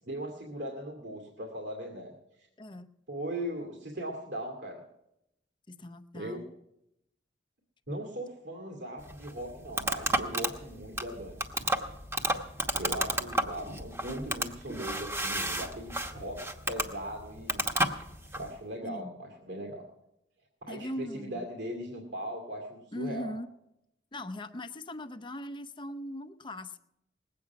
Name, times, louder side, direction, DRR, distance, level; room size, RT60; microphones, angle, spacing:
voice 1, 0.0-2.5 3.1-4.8 6.1-6.5 7.9-11.4 12.8-17.7 18.4-19.8 20.7-23.3, right 1 dB, 80° right, 0 dB, 2.4 m, -39 dB
voice 2, 5.7-6.5 18.8-19.1 20.7-21.5 22.9-23.5 24.1-26.8, left 1 dB, 30° left, 9 dB, 0.7 m, -40 dB
sound 1, 9.0-18.5, right 1 dB, 15° right, 1.0 m, -32 dB
20.0 x 8.5 x 5.9 m, 0.83 s
head